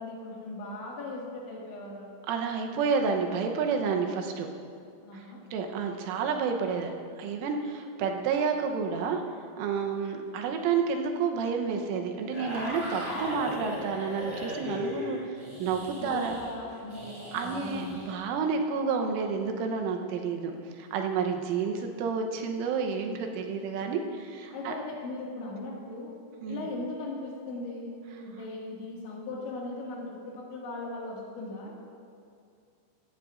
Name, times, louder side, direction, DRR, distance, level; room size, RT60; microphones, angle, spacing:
voice 1, 0.0-2.1 5.0-5.4 16.0-17.1 17.4-18.0 24.5-26.2 26.5-27.9 28.2-31.7, left 2 dB, 70° left, -3 dB, 4.3 m, -38 dB
voice 2, 2.3-4.5 5.5-9.2 9.6-15.2 15.6-16.3 17.3-24.7 26.4-26.6, right 5 dB, 85° right, 3 dB, 3.4 m, -30 dB
sound 1, 12.3-18.1, left 1 dB, 20° right, 2.8 m, -38 dB
17.5 x 14.5 x 2.5 m, 2.4 s
omnidirectional pair, 5.6 m